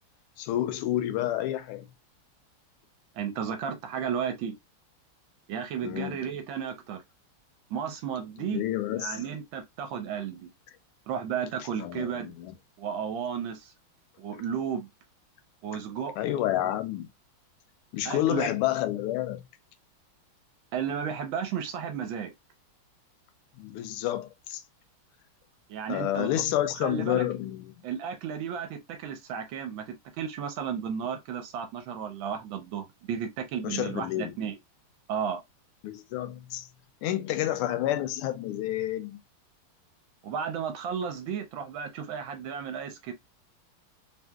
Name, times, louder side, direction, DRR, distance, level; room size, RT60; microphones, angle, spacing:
voice 1, 0.4-1.9 5.8-6.3 8.4-9.2 11.8-12.5 14.3-14.4 16.2-17.1 17.9-19.4 23.6-24.6 25.9-27.7 33.6-34.4 35.8-36.7 37.0-39.2, left 13 dB, 85° left, 1.5 m, -29 dB
voice 2, 3.2-4.5 5.5-7.0 7.7-8.6 9.0-10.5 11.1-12.3 12.8-13.7 14.2-14.9 15.6-16.1 18.0-18.5 20.7-22.3 25.7-26.3 26.8-27.2 27.8-34.5 35.1-35.4 40.2-43.1, right 7 dB, 75° right, 1.3 m, -33 dB
3.4 x 2.7 x 2.2 m
omnidirectional pair, 2.3 m